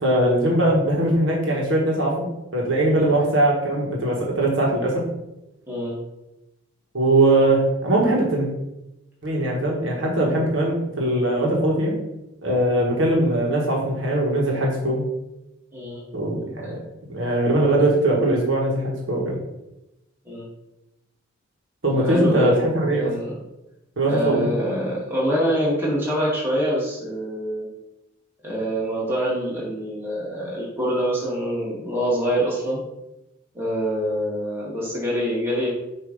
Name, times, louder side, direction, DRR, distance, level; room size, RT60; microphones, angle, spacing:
voice 1, 0.0-5.0 6.9-8.5 9.2-11.9 12.4-15.0 16.1-16.8 17.1-19.4 21.8-23.1 24.0-24.5, right 1 dB, 65° right, -2 dB, 1.3 m, -21 dB
voice 2, 22.0-23.3 24.1-27.7 28.4-32.8 33.5-35.7, equal, 10° right, -6 dB, 1.8 m, -25 dB
6.6 x 2.7 x 5.2 m, 0.93 s
head